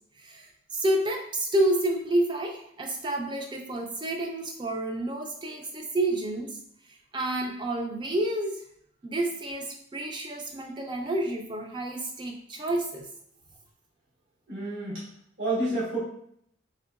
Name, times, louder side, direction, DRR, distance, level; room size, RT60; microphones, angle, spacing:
voice 1, 0.2-6.6 7.1-8.6 9.0-9.7 9.9-13.1, right 1 dB, 20° right, 2 dB, 0.4 m, -29 dB
voice 2, 14.5-15.0 15.4-16.0, right 2 dB, 65° right, -9 dB, 1.2 m, -29 dB
3.7 x 2.9 x 2.3 m, 0.70 s
head